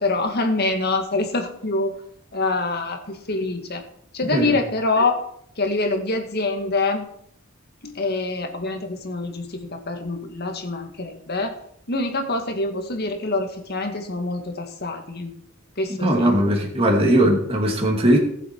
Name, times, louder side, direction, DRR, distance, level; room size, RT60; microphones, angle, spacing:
voice 1, 0.0-2.0 2.3-3.8 4.1-5.2 5.6-7.1 7.8-11.6 11.9-15.3 15.8-16.4, left 2 dB, 50° left, 5 dB, 1.9 m, -25 dB
voice 2, 16.0-18.2, right 1 dB, 30° right, -1 dB, 2.6 m, -19 dB
19.0 x 7.7 x 4.7 m, 0.69 s
head